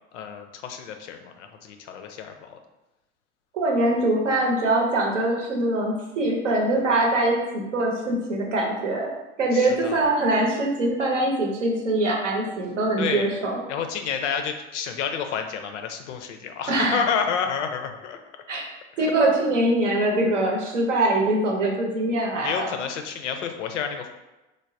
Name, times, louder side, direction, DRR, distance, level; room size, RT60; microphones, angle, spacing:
voice 1, 0.1-2.6 9.5-10.1 13.0-13.3 13.7-18.2 19.0-19.1 22.4-24.1, left 7 dB, 80° left, 6 dB, 0.5 m, -30 dB
voice 2, 3.5-9.1 9.4-13.6 16.7-17.0 18.5-18.7 19.0-22.7, right 2 dB, 85° right, -1 dB, 0.8 m, -23 dB
3.3 x 2.0 x 2.5 m, 1.0 s
hypercardioid pair, 80°, 36 cm